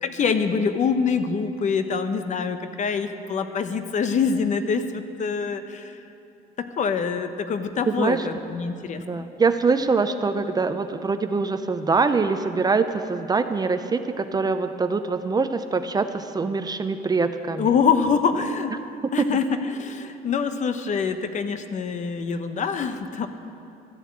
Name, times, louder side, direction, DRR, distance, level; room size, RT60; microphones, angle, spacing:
voice 1, 0.0-6.0 6.6-9.3 17.6-18.7 19.1-23.3, left 6 dB, 45° left, 9 dB, 0.8 m, -25 dB
voice 2, 7.9-8.2 9.1-17.7 19.2-19.3, right 4 dB, 25° right, 9 dB, 0.5 m, -24 dB
13.0 x 7.2 x 8.5 m, 2.7 s
cardioid pair, 110°, 17 cm